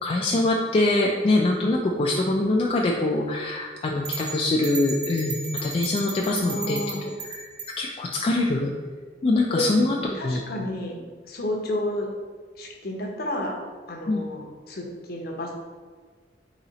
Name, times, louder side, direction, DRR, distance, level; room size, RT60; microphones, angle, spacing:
voice 1, 0.0-6.8 7.8-8.7 9.2-10.0 10.2-10.4 14.1-14.2, left 2 dB, 35° left, -1 dB, 0.3 m, -23 dB
sound 1, 4.0-7.7, right 4 dB, 30° right, 1.3 m, -35 dB
voice 2, 6.4-7.1 9.5-9.6 10.0-11.0 11.3-12.1 12.6-13.6 13.9-15.5, left 1 dB, 60° left, 1 dB, 0.8 m, -31 dB
4.1 x 2.8 x 4.0 m, 1.6 s
head